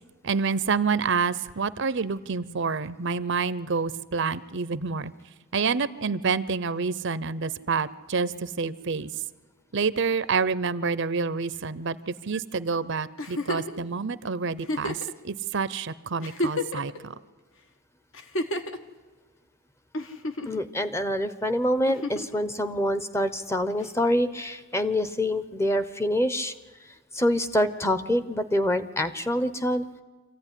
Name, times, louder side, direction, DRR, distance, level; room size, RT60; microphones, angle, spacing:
voice 1, 0.2-5.1 5.5-9.1 9.7-17.1, right 5 dB, 55° right, 16 dB, 0.6 m, -28 dB
Giggle, 13.2-13.8 14.6-15.1 15.8-15.9 16.2-17.0 18.1-18.8 19.9-20.6 21.9-22.3 23.8-23.9, left 1 dB, 60° left, 1.4 m, -30 dB
voice 2, 20.5-26.5 27.1-29.9, left 1 dB, 10° left, 12 dB, 0.8 m, -26 dB
25.5 x 15.0 x 10.0 m, 1.4 s
head